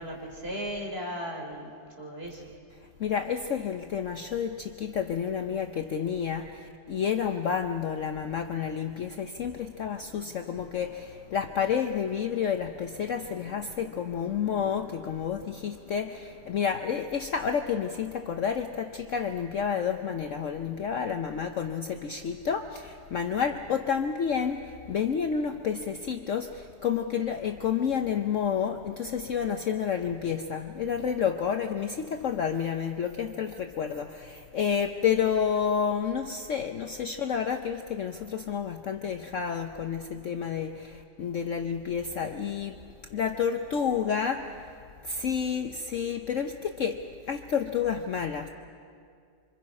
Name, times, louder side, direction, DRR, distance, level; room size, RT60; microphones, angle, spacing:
voice 1, 0.0-2.4, equal, 35° right, -1 dB, 3.8 m, -36 dB
voice 2, 3.0-42.8 43.1-44.6 45.0-48.5, left 7 dB, 60° left, 6 dB, 0.9 m, -30 dB
26.5 x 25.5 x 5.3 m, 2.3 s
omnidirectional pair, 1.8 m